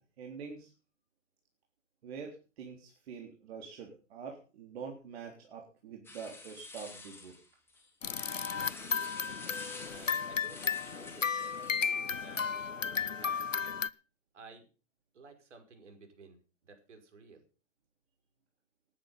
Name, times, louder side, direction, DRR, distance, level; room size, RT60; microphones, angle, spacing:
voice 1, 0.2-0.7 2.0-7.3, right 6 dB, 55° right, 1 dB, 3.6 m, -45 dB
sound 1, 6.0-12.6, left 3 dB, 5° left, 4.3 m, -50 dB
sound 2, 8.0-13.9, left 6 dB, 90° left, 0.9 m, -34 dB
voice 2, 8.5-9.3 9.9-13.5 14.3-14.7 15.1-17.4, right 4 dB, 70° right, 5 dB, 5.4 m, -55 dB
19.0 x 9.5 x 5.6 m, 0.36 s
figure-of-eight pair, 110°, 37 cm